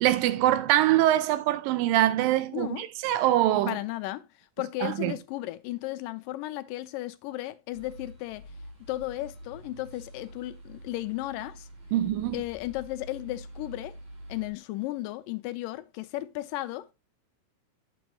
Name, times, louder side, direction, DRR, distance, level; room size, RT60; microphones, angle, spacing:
voice 1, 0.0-3.8 4.8-5.1 11.9-12.4, right 13 dB, 90° right, 2.4 m, -24 dB
voice 2, 2.5-2.9 3.7-8.5 8.9-11.7 12.3-14.0 14.3-16.9, left 16 dB, 85° left, 2.2 m, -35 dB
sound 1, 7.7-14.5, equal, 45° right, 3.8 m, -47 dB
8.8 x 6.9 x 3.0 m
omnidirectional pair, 3.9 m